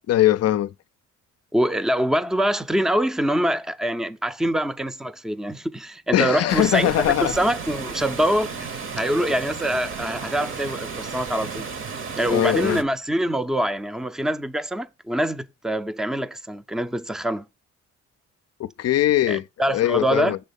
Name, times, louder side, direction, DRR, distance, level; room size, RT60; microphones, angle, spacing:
voice 1, 0.1-0.7 6.1-7.3 12.3-12.8 18.6-20.4, left 13 dB, 55° left, 0.5 m, -21 dB
voice 2, 1.5-6.9 7.2-11.7 12.2-17.4 19.3-20.3, equal, ahead, 0.5 m, -24 dB
Water, 6.5-12.8, right 5 dB, 45° right, 0.9 m, -33 dB
6.4 x 4.4 x 5.2 m
cardioid pair, 90°, 30 cm